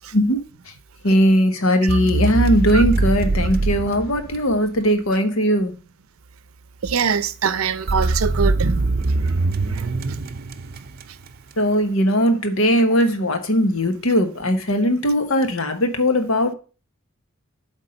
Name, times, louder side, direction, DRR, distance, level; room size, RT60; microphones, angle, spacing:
voice 1, 1.0-5.7 11.6-16.5, equal, 80° left, 1.2 m, -19 dB
sound 1, 1.9-4.9 7.9-11.3, right 2 dB, 45° right, 0.5 m, -22 dB
voice 2, 6.8-9.3 9.7-9.9, right 6 dB, 90° right, 0.6 m, -24 dB
8.2 x 3.6 x 5.3 m
head